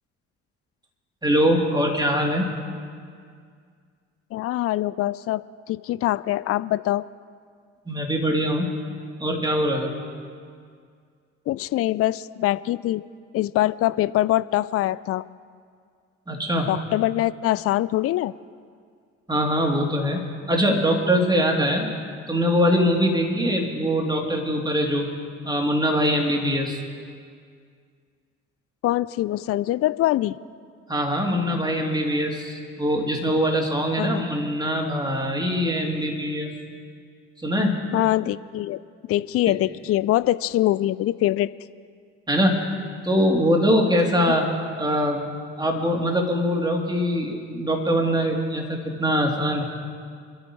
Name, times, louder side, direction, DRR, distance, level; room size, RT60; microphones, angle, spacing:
voice 1, 1.2-2.5 7.9-8.7 9.2-9.9 16.3-16.7 19.3-21.9 22.3-25.1 25.4-26.8 30.9-36.5 37.4-37.8 42.3-42.7 43.0-44.5 44.8-45.3 45.6-49.6, equal, 10° right, 0 dB, 3.3 m, -22 dB
voice 2, 4.3-7.0 11.5-13.0 13.3-15.2 16.7-18.3 28.8-30.4 34.0-34.2 37.9-38.8 39.1-41.5 44.3-44.4, left 15 dB, 40° left, 18 dB, 0.5 m, -23 dB
27.0 x 13.0 x 3.3 m, 2.1 s
hypercardioid pair, 50°, 35 cm